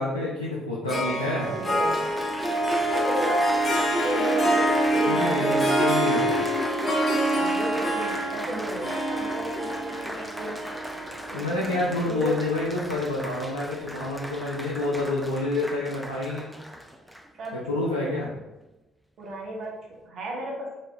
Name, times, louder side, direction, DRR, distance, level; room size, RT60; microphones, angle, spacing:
voice 1, 0.0-1.5 5.1-6.4 11.3-16.5 17.7-18.3, left 2 dB, 90° left, -7 dB, 0.4 m, -28 dB
Applause, 0.8-0.9 1.6-17.5 18.2-18.5, equal, 5° right, 0.4 m, -38 dB
Harp, 0.9-12.3, right 1 dB, 30° left, 0.8 m, -25 dB
voice 2, 0.9-2.1 2.9-3.5 4.0-6.2 7.2-10.7 11.3-12.4 17.3-18.3 19.2-20.8, right 1 dB, 50° right, -1 dB, 0.8 m, -34 dB
2.9 x 2.7 x 3.1 m, 1.0 s
figure-of-eight pair, 45°, 0 cm